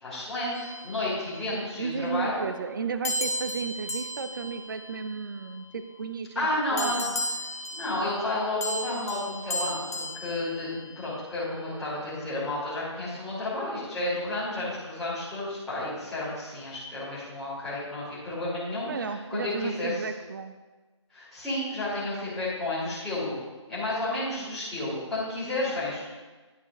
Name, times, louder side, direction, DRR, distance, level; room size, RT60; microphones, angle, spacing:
voice 1, 0.0-2.4 6.3-7.0 7.7-9.8 10.1-19.9 21.1-23.4 23.7-26.0, left 1 dB, ahead, -14 dB, 2.6 m, -31 dB
sound 1, 0.5-1.8 3.0-5.7 6.8-11.3, left 1 dB, 30° left, 0.8 m, -35 dB
voice 2, 1.5-7.2 18.9-20.5, right 5 dB, 45° right, 10 dB, 0.4 m, -34 dB
11.0 x 4.9 x 3.6 m, 1.3 s
figure-of-eight pair, 160°, 16 cm